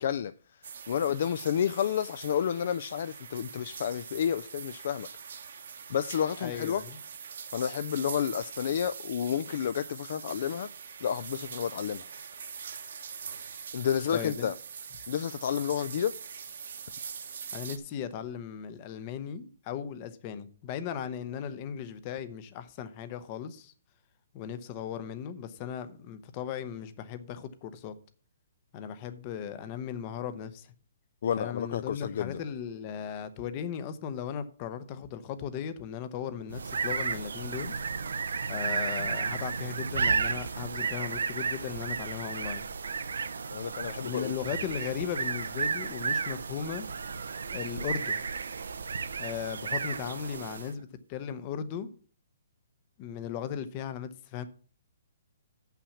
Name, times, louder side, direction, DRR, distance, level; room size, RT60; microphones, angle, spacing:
voice 1, 0.0-5.1 5.9-6.8 7.5-10.7 11.0-12.1 13.7-14.6 15.1-16.2 31.2-32.4 43.5-44.3, left 8 dB, 45° left, 0.3 m, -30 dB
sound 1, 0.6-17.8, right 7 dB, 60° right, 1.1 m, -43 dB
voice 2, 6.4-7.0 14.1-14.5 17.5-23.7 24.3-27.9 28.7-30.7 31.4-37.7 38.5-42.6 44.0-46.9 47.5-48.2 49.2-51.9 53.0-54.5, left 8 dB, 25° left, 0.7 m, -37 dB
sound 2, 36.5-50.8, right 5 dB, 90° right, 0.7 m, -33 dB
6.9 x 5.8 x 7.1 m
hypercardioid pair, 175°, 0 cm